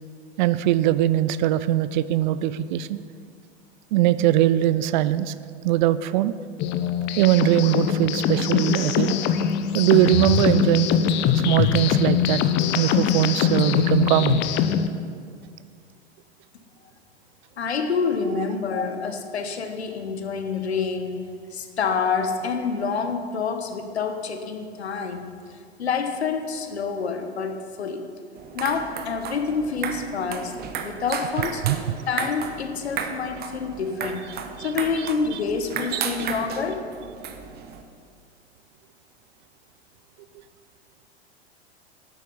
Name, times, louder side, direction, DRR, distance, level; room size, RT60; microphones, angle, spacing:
voice 1, 0.4-3.0 3.9-5.3 5.6-6.3 7.2-9.2 9.7-10.9 11.3-12.4 12.7-14.4 31.6-31.8 34.6-34.7, right 13 dB, 45° right, 15 dB, 0.5 m, -21 dB
sound 1, 6.6-14.9, left 8 dB, 35° left, 0.7 m, -22 dB
voice 2, 17.6-28.1 28.5-31.6 32.1-34.3 34.6-36.9, left 5 dB, 75° left, 7 dB, 1.2 m, -27 dB
sound 2, 28.4-37.8, right 7 dB, 30° right, 1.0 m, -34 dB
11.5 x 9.1 x 5.5 m, 2.1 s
figure-of-eight pair, 90°, 33 cm